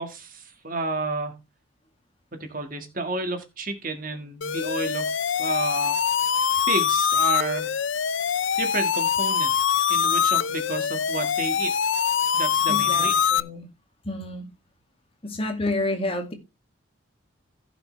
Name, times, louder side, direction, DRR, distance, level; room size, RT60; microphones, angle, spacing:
voice 1, 0.0-1.4 2.3-6.0 6.7-7.8 8.6-9.5 9.9-11.7 12.3-13.1, right 3 dB, 40° right, 1.8 m, -31 dB
sound 1, 4.4-13.4, left 7 dB, 65° left, 0.5 m, -23 dB
voice 2, 12.7-13.7 14.0-14.5 15.2-16.3, left 2 dB, 30° left, 2.2 m, -29 dB
16.0 x 6.0 x 3.3 m
head